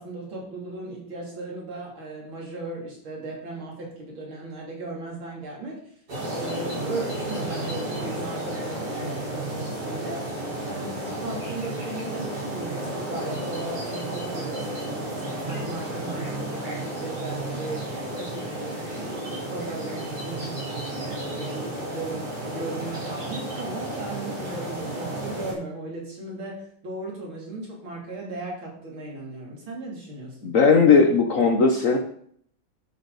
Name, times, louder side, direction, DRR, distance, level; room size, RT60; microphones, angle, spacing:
voice 1, 0.0-5.8 6.3-10.3 10.6-20.6 20.9-30.5, right 2 dB, 75° right, -3 dB, 4.1 m, -37 dB
sound 1, 6.1-25.5, right 1 dB, 50° right, 5.0 m, -32 dB
voice 2, 30.4-32.0, left 5 dB, 50° left, 4 dB, 1.2 m, -17 dB
11.5 x 8.6 x 4.1 m, 0.63 s
omnidirectional pair, 2.2 m